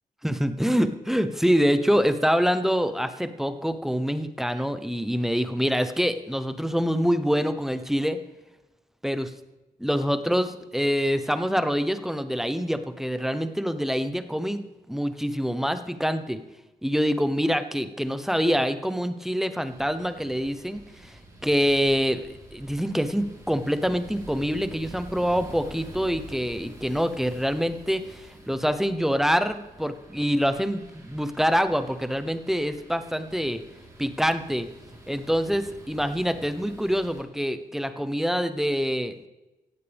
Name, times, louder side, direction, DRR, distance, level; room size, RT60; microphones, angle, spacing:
voice 1, 0.2-8.2 9.0-9.3 9.8-16.4 16.8-33.6 34.0-34.7 35.1-39.1, equal, ahead, 10 dB, 0.8 m, -25 dB
sound 1, 19.7-37.2, right 1 dB, 20° right, 3.8 m, -48 dB
16.5 x 16.0 x 3.5 m, 1.0 s
wide cardioid pair, 145°, 16 cm